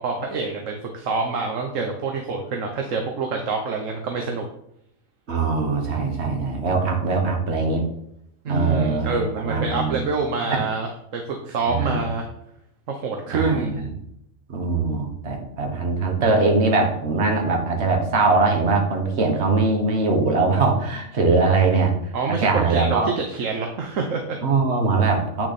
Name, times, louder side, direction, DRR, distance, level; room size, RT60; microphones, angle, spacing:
voice 1, 0.0-4.4 8.4-12.3 12.9-13.8 22.1-24.4, right 4 dB, 70° right, 3 dB, 1.3 m, -26 dB
voice 2, 5.3-7.8 8.5-10.0 10.5-10.6 11.7-12.0 13.3-13.9 14.5-21.9 22.4-23.1 24.4-25.5, right 3 dB, 50° right, 2 dB, 1.6 m, -21 dB
8.4 x 6.1 x 4.2 m, 0.75 s
omnidirectional pair, 1.4 m